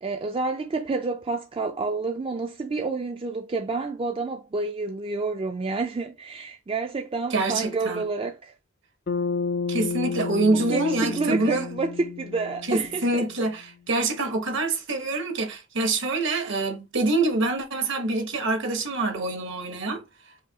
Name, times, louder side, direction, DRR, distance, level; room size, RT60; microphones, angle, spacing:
voice 1, 0.0-8.5 10.5-13.2, right 3 dB, 25° right, 0.4 m, -29 dB
voice 2, 7.3-8.1 9.7-11.7 12.7-20.0, right 2 dB, 65° right, 1.1 m, -25 dB
Bass guitar, 9.1-13.4, left 5 dB, 50° left, 0.5 m, -31 dB
5.0 x 2.7 x 2.8 m
head